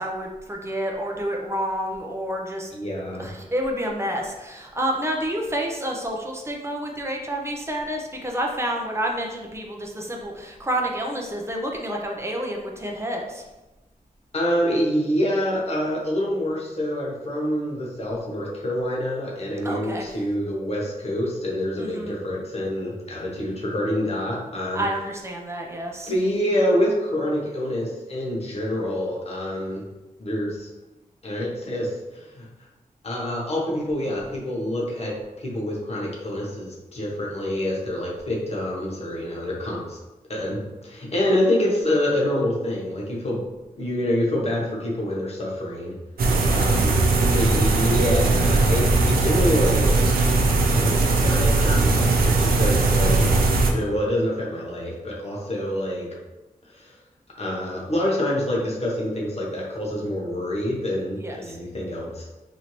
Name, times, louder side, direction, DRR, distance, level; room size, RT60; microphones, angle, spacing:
voice 1, 0.0-2.7 3.2-13.4 19.6-20.1 21.8-22.1 24.7-26.1 46.4-46.9 52.0-52.2 61.2-61.6, equal, 20° right, 0 dB, 0.5 m, -29 dB
voice 2, 2.7-3.3 14.3-24.8 26.1-29.8 30.2-30.7 31.2-32.5 33.0-40.0 40.3-43.4 43.8-46.0 46.4-46.9 47.3-49.9 50.7-56.1 56.7-57.0 57.4-62.3, left 1 dB, 45° left, -3 dB, 0.8 m, -26 dB
sound 1, 46.2-53.7, right 3 dB, 90° right, 0.5 m, -19 dB
4.3 x 2.6 x 3.0 m, 1.0 s
wide cardioid pair, 170°, 15 cm